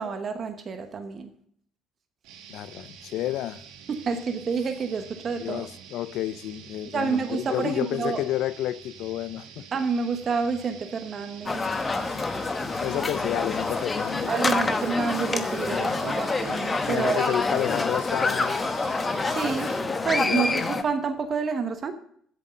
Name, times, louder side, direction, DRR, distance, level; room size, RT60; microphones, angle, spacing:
voice 1, 0.0-1.3 3.9-5.7 6.9-8.2 9.7-11.7 14.3-17.4 19.3-19.8 20.0-21.9, right 5 dB, 45° right, 1.0 m, -28 dB
sound 1, 2.2-19.8, right 7 dB, 80° right, 1.2 m, -47 dB
voice 2, 2.5-3.6 5.4-9.7 12.8-14.3 15.7-16.2 16.8-18.6 20.3-20.7, left 13 dB, 70° left, 0.5 m, -30 dB
sound 2, 11.5-20.8, left 3 dB, 25° left, 1.0 m, -27 dB
7.7 x 7.5 x 6.5 m
supercardioid pair, 70°, 0 cm